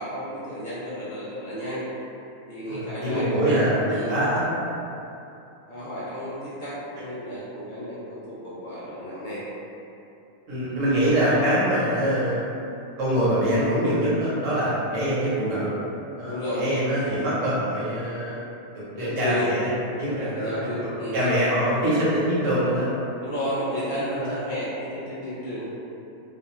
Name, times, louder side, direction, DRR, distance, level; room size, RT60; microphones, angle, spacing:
voice 1, 0.0-1.8 2.5-4.2 5.7-8.0 8.3-9.4 11.1-11.2 15.1-15.3 16.2-16.6 18.9-19.5 19.9-21.3 21.7-21.8 23.2-25.7, equal, 70° left, -11 dB, 0.4 m, -32 dB
voice 2, 2.7-4.4 10.5-12.4 13.0-15.7 16.2-18.5 18.7-19.7 20.0-22.9 24.1-24.3, equal, 65° right, -9 dB, 1.1 m, -24 dB
2.5 x 2.3 x 2.9 m, 2.8 s
omnidirectional pair, 1.5 m